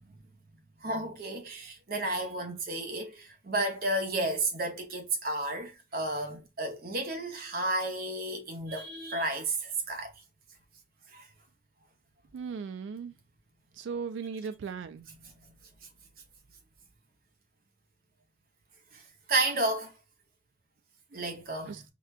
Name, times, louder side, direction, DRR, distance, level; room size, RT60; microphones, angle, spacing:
voice 1, 0.8-10.1 11.1-11.2 18.9-19.0 19.3-19.9 21.1-21.8, right 2 dB, 50° right, 0.8 m, -32 dB
voice 2, 12.3-13.1 13.7-15.1 21.7-21.8, right 6 dB, 85° right, 0.3 m, -37 dB
4.9 x 2.2 x 2.3 m
head